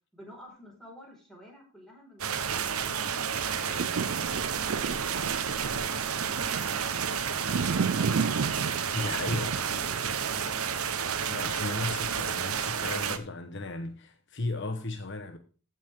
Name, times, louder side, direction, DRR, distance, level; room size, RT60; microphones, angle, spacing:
voice 1, 0.1-3.1 3.6-8.3 9.0-9.3 9.6-10.6, equal, ahead, 4.9 m, -51 dB
sound 1, 2.2-13.2, right 7 dB, 75° right, 1.1 m, -31 dB
sound 2, 3.4-11.6 12.2-12.3, right 5 dB, 60° right, 0.4 m, -34 dB
voice 2, 8.9-9.6 11.3-15.4, left 2 dB, 55° left, 1.1 m, -35 dB
15.5 x 6.2 x 3.7 m
head